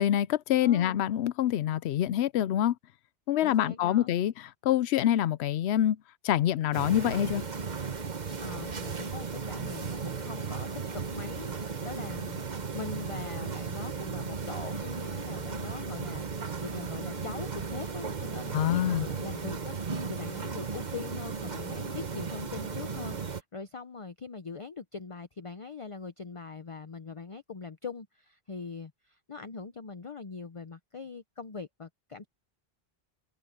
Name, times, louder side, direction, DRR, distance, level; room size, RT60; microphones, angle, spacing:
voice 1, 0.0-2.8 3.3-4.3 4.6-6.0 6.2-7.4 18.5-19.1, left 11 dB, 90° left, 0.8 m, -26 dB
voice 2, 0.6-1.0 3.4-4.1 8.4-32.3, left 4 dB, 35° left, 0.7 m, -42 dB
sound 1, 6.7-23.4, right 5 dB, 45° right, 1.2 m, -36 dB
omnidirectional pair, 1.1 m